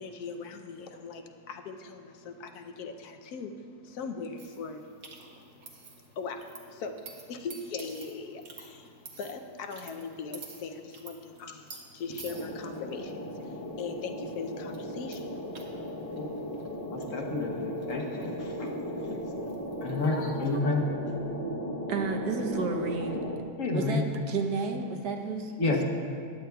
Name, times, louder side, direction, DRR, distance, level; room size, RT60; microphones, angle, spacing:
voice 1, 0.0-16.7, left 4 dB, 75° left, 5 dB, 1.1 m, -41 dB
sound 1, 4.4-20.6, right 4 dB, 60° right, 1.5 m, -51 dB
sound 2, 12.3-23.4, equal, 30° left, 0.9 m, -37 dB
voice 2, 16.9-18.7 19.0-20.9 23.6-24.0 25.6-25.8, left 3 dB, 55° left, 1 dB, 1.2 m, -30 dB
voice 3, 21.9-23.2 23.7-25.8, right 4 dB, 80° right, 3 dB, 1.4 m, -32 dB
15.0 x 10.5 x 2.3 m, 2.3 s
omnidirectional pair, 1.7 m